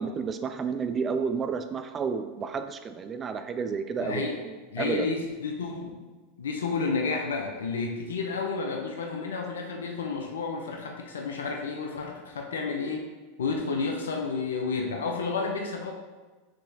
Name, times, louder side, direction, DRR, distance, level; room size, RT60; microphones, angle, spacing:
voice 1, 0.0-5.1, right 5 dB, 30° right, 9 dB, 0.4 m, -31 dB
voice 2, 4.0-4.4 4.7-6.0 6.4-13.1 13.4-15.9, left 4 dB, 90° left, 2 dB, 0.5 m, -31 dB
6.0 x 2.9 x 2.7 m, 1.3 s
hypercardioid pair, 105°, 0 cm